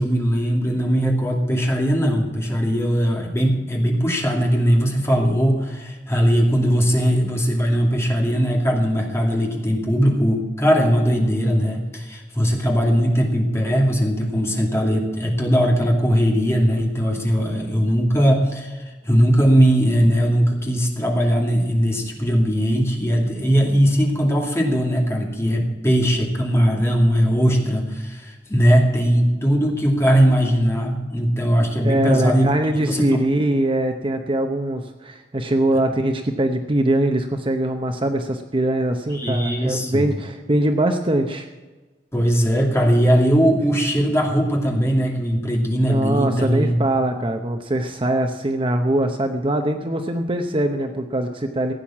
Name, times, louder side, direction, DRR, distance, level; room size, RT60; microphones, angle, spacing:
voice 1, 0.0-33.2 39.1-40.1 42.1-46.8, equal, 15° left, 0 dB, 2.5 m, -19 dB
voice 2, 31.8-41.5 45.9-51.7, right 1 dB, 30° right, 5 dB, 0.8 m, -22 dB
16.0 x 9.1 x 7.2 m, 1.3 s
head